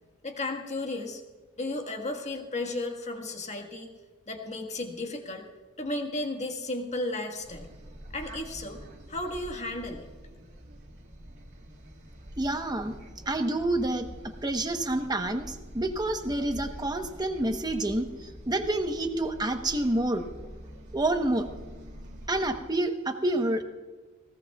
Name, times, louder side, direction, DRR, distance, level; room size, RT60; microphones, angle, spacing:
voice 1, 0.2-1.2 1.6-3.9 4.3-5.4 5.8-7.7 8.1-8.8 9.1-10.1, left 2 dB, 35° left, 3 dB, 1.6 m, -34 dB
sound 1, 7.4-22.6, equal, 60° right, 2.0 m, -46 dB
voice 2, 12.4-13.0 13.3-14.1 14.4-20.3 20.9-21.5 22.3-23.6, right 1 dB, 20° right, 6 dB, 1.0 m, -28 dB
19.5 x 17.5 x 2.4 m, 1.3 s
head